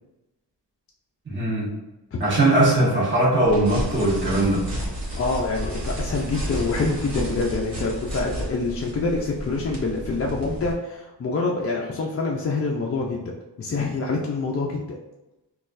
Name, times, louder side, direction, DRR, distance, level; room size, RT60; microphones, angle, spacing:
voice 1, 1.2-1.7 2.2-4.7, right 1 dB, 25° right, -7 dB, 1.4 m, -20 dB
sound 1, 3.5-10.7, equal, 55° right, 1.3 m, -32 dB
voice 2, 5.2-15.0, left 3 dB, 35° left, -2 dB, 0.4 m, -26 dB
4.0 x 2.4 x 2.5 m, 1.0 s
cardioid pair, 75°, 42 cm